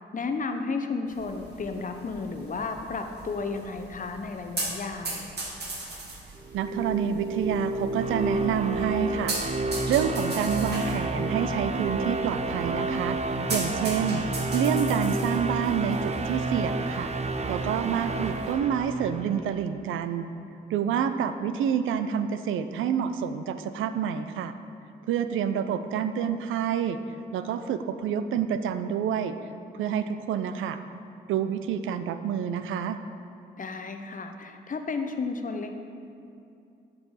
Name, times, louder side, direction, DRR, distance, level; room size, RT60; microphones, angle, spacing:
voice 1, 0.1-5.3 17.6-18.2 33.6-35.7, left 4 dB, 40° left, 6 dB, 0.8 m, -33 dB
sound 1, 1.1-18.5, right 2 dB, 55° right, 1.7 m, -39 dB
sound 2, 6.4-19.5, right 2 dB, 35° right, 0.6 m, -30 dB
voice 2, 6.5-14.2 14.5-17.1 17.5-20.3 20.7-24.5 25.1-27.0 27.3-29.4 29.7-30.8 31.3-33.0, right 8 dB, 80° right, 10 dB, 0.4 m, -28 dB
7.7 x 6.1 x 4.1 m, 2.6 s
supercardioid pair, 40°, 20 cm